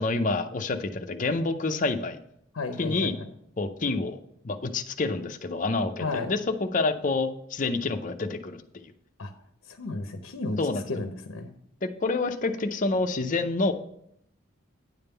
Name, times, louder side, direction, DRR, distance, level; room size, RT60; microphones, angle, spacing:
voice 1, 0.0-2.2 2.8-3.1 3.6-4.2 4.4-8.8 10.6-10.8 12.0-13.7, left 3 dB, 40° left, 7 dB, 0.5 m, -28 dB
voice 2, 2.5-3.3 6.0-6.3 9.2-9.3 9.7-10.6 10.9-11.6, left 3 dB, 85° left, 6 dB, 0.7 m, -33 dB
9.8 x 3.6 x 6.7 m, 0.73 s
head